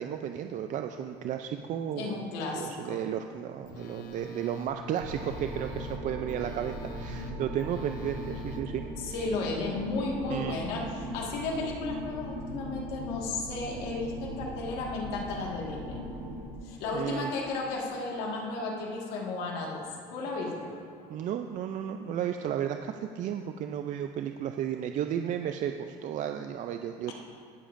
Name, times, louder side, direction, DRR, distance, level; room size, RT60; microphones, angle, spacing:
voice 1, 0.0-2.3 2.6-8.9 10.3-10.6 16.9-17.3 21.1-27.1, right 9 dB, 50° right, 6 dB, 0.4 m, -33 dB
voice 2, 2.0-3.0 9.0-16.0 16.6-19.8 20.1-20.7 27.1-27.2, left 3 dB, 85° left, -1 dB, 1.8 m, -34 dB
Telephone, 3.6-8.6, left 5 dB, 70° left, 0.7 m, -46 dB
sound 1, 5.0-16.5, equal, 85° right, 1.8 m, -39 dB
20.0 x 7.2 x 2.6 m, 2.6 s
cardioid pair, 110°, 16 cm